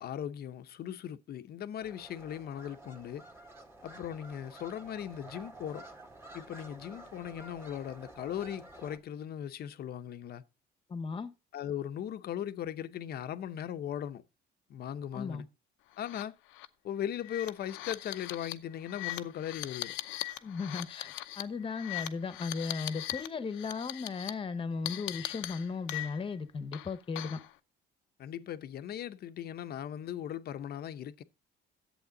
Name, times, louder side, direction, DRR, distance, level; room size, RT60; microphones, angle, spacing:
voice 1, 0.0-3.2 3.8-5.8 6.3-10.4 11.5-14.2 14.7-15.4 16.0-16.3 16.8-20.0 28.2-31.2, left 10 dB, 55° left, 0.8 m, -38 dB
sound 1, 1.8-9.0, right 1 dB, 15° right, 1.8 m, -51 dB
voice 2, 10.9-11.3 15.1-15.4 20.4-27.4, left 4 dB, 30° left, 1.1 m, -36 dB
sound 2, 16.0-16.2 16.5-16.7 17.2-23.3 23.5-24.3 24.9-26.4 26.7-27.5, left 16 dB, 90° left, 0.7 m, -40 dB
11.0 x 7.9 x 3.8 m
cardioid pair, 105°, 19 cm